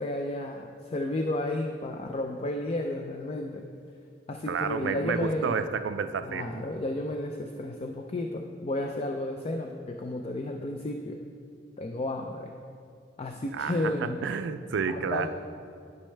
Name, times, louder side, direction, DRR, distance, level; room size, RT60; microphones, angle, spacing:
voice 1, 0.0-3.7 4.3-5.6 6.2-11.2 11.8-12.5 13.2-14.2 14.9-15.3, left 1 dB, 35° left, 3 dB, 0.4 m, -32 dB
voice 2, 4.5-6.6 13.5-13.7 14.2-15.3, right 6 dB, 75° right, 11 dB, 0.4 m, -30 dB
12.0 x 5.4 x 3.3 m, 2.4 s
head